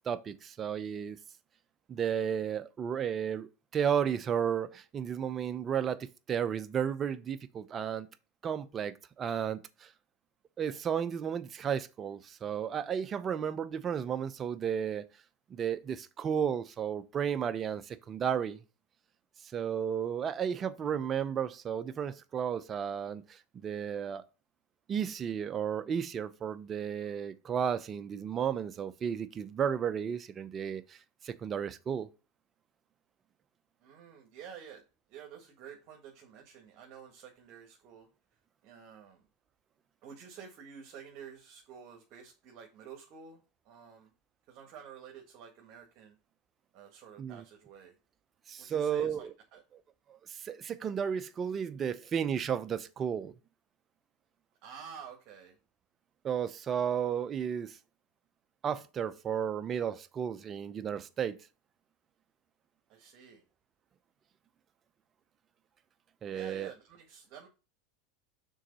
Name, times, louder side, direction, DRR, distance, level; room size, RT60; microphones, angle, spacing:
voice 1, 0.1-1.2 1.9-8.1 8.4-9.9 10.6-15.1 15.5-18.6 19.5-24.2 24.9-31.0 31.2-32.1 47.2-47.4 48.5-49.3 50.3-53.3 56.2-57.8 58.6-61.4 66.2-66.7, right 8 dB, 30° right, 0.7 m, -33 dB
voice 2, 33.8-34.8 35.1-38.1 38.6-39.2 40.0-43.4 43.6-44.1 44.5-46.1 46.7-47.9 48.6-49.6 54.6-55.5 62.9-63.4 66.3-67.5, right 7 dB, 55° right, 1.6 m, -50 dB
6.4 x 4.0 x 5.3 m
supercardioid pair, 115°, 0 cm